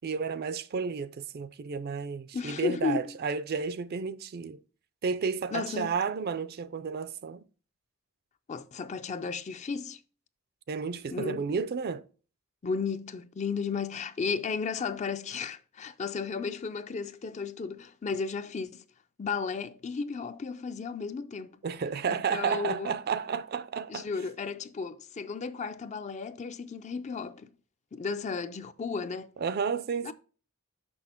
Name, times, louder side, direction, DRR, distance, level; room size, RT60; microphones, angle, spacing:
voice 1, 0.0-4.6 5.0-7.4 10.7-12.0 21.6-24.1 29.4-30.1, right 6 dB, 45° right, 0.4 m, -32 dB
voice 2, 2.3-3.2 5.5-5.9 8.5-10.0 11.1-11.5 12.6-18.8 19.2-21.6 22.1-23.0 23.9-27.5 27.9-29.3 30.0-30.1, left 5 dB, 35° left, 0.4 m, -34 dB
6.2 x 5.6 x 4.4 m
head